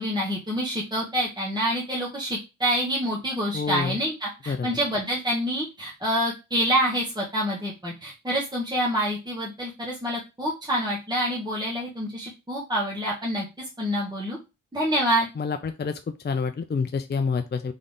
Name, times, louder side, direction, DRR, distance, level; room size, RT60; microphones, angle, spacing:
voice 1, 0.0-13.4 13.8-14.4 14.7-15.3, equal, 15° right, -5 dB, 1.5 m, -27 dB
voice 2, 3.5-3.9 4.5-4.7 15.4-15.9 16.2-17.7, left 5 dB, 30° left, 8 dB, 0.5 m, -27 dB
3.9 x 3.7 x 3.6 m, 0.27 s
cardioid pair, 55°, 33 cm